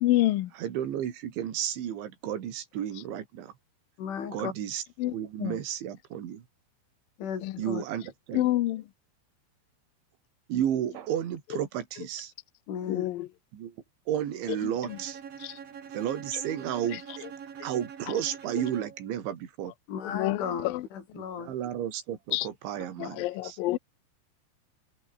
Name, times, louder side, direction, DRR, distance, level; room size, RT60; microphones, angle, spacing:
voice 1, 0.0-0.5 5.0-5.6 7.4-7.6 8.3-8.8 12.9-13.3 14.6-15.0 15.4-15.6 16.3-16.4 16.9-17.0 18.1-18.2 20.0-20.8 22.3-22.5 23.0-23.8, left 16 dB, 70° left, 2.2 m, -28 dB
voice 2, 0.6-3.5 4.3-6.4 7.6-8.5 10.5-12.3 13.5-13.8 14.1-15.2 15.9-17.2 17.6-19.7 21.2-23.6, right 10 dB, 75° right, 5.1 m, -33 dB
voice 3, 4.0-4.5 7.2-7.8 12.7-13.1 19.9-21.5, left 7 dB, 90° left, 6.9 m, -35 dB
Bowed string instrument, 14.9-19.1, right 7 dB, 45° right, 2.5 m, -44 dB
omnidirectional pair, 5.3 m